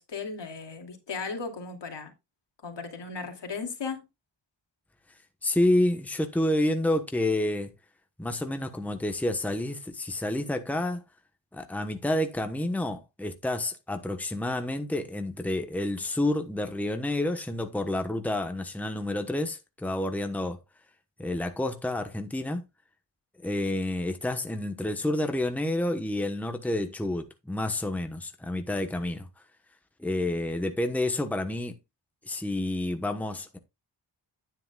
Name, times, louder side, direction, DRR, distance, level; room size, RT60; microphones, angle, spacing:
voice 1, 0.0-2.1 2.6-4.0, left 4 dB, 70° left, 2.6 m, -36 dB
voice 2, 5.4-7.7 8.2-11.0 11.5-20.6 21.2-22.6 23.4-29.3 30.0-31.7 32.3-33.6, left 1 dB, 5° left, 1.1 m, -29 dB
10.0 x 9.5 x 2.3 m
wide cardioid pair, 110°, 44 cm